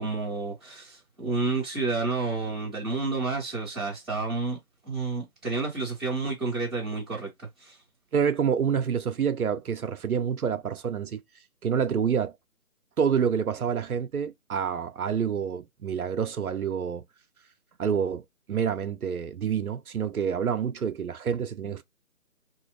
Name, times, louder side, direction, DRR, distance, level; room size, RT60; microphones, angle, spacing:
voice 1, 0.0-4.6 4.8-7.8, right 3 dB, ahead, 0.9 m, -30 dB
voice 2, 8.1-11.2 11.6-12.3 13.0-17.0 17.8-21.8, right 7 dB, 85° right, 0.8 m, -27 dB
3.1 x 2.5 x 3.2 m
figure-of-eight pair, 160°, 42 cm